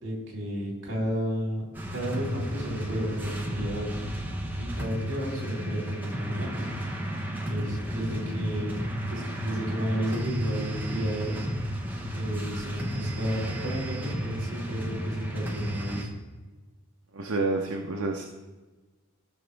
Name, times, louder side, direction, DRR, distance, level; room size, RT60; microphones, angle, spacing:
voice 1, 0.0-1.7 1.9-3.8 4.6-6.7 7.3-8.8 9.1-11.4 12.1-16.1, equal, 55° right, -2 dB, 3.6 m, -32 dB
sound 1, 1.7-16.1, equal, 10° right, 1.1 m, -33 dB
voice 2, 17.1-18.3, right 3 dB, 70° right, 2 dB, 0.8 m, -28 dB
16.5 x 6.1 x 3.4 m, 1.2 s
head